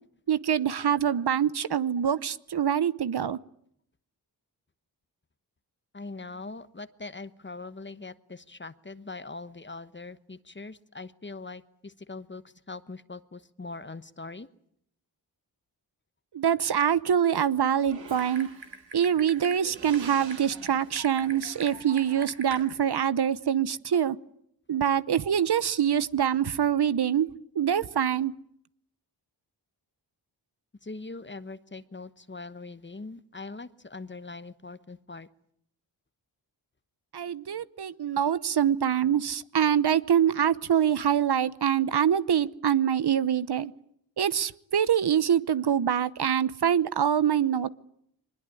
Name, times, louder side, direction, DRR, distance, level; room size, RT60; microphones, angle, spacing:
voice 1, 0.3-3.4 16.3-18.5 18.9-24.2 24.7-27.3 27.5-28.3 37.1-43.7 44.2-47.7, right 9 dB, 60° right, 16 dB, 0.9 m, -25 dB
voice 2, 5.9-14.5 30.8-35.3, left 3 dB, 25° left, 14 dB, 1.1 m, -42 dB
Typing, 17.9-22.6, right 4 dB, 85° right, 3.6 m, -43 dB
22.5 x 20.5 x 9.8 m, 0.72 s
cardioid pair, 60°, 44 cm